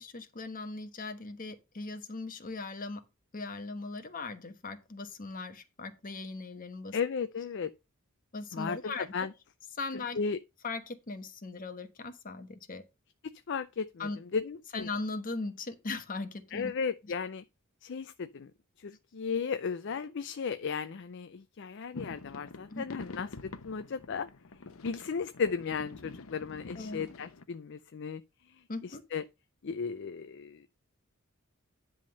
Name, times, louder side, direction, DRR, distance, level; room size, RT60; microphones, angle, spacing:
voice 1, 0.0-3.0 3.3-7.0 8.3-9.1 9.7-10.2 10.6-12.8 14.0-14.2 14.7-16.7 22.7-22.9 26.8-27.1 28.7-29.0, left 3 dB, 40° left, 1.2 m, -39 dB
voice 2, 6.9-7.7 8.5-9.3 10.1-10.4 13.5-14.9 16.5-17.4 17.8-18.5 18.8-24.3 24.8-28.2 28.5-29.2 29.6-30.7, left 5 dB, 55° left, 0.5 m, -35 dB
sound 1, 21.9-27.4, left 3 dB, 90° left, 0.8 m, -46 dB
10.0 x 3.7 x 6.3 m
head